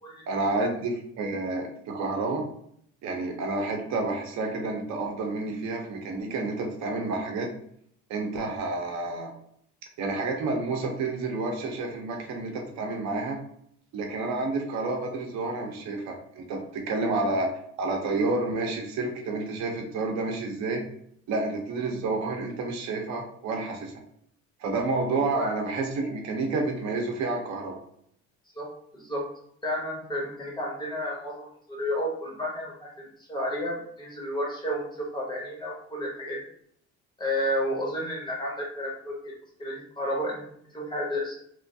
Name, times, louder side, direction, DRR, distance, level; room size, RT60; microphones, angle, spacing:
voice 1, 0.3-2.5 3.0-7.5 8.1-9.3 10.0-13.4 13.9-17.5 17.8-20.8 21.3-23.9 24.6-27.8, right 3 dB, 65° right, 2 dB, 0.6 m, -29 dB
voice 2, 28.9-29.2 29.6-36.4 37.2-39.3 39.6-40.4 40.7-41.4, equal, 15° left, -3 dB, 0.6 m, -31 dB
3.0 x 2.3 x 2.5 m, 0.68 s
cardioid pair, 165°, 30 cm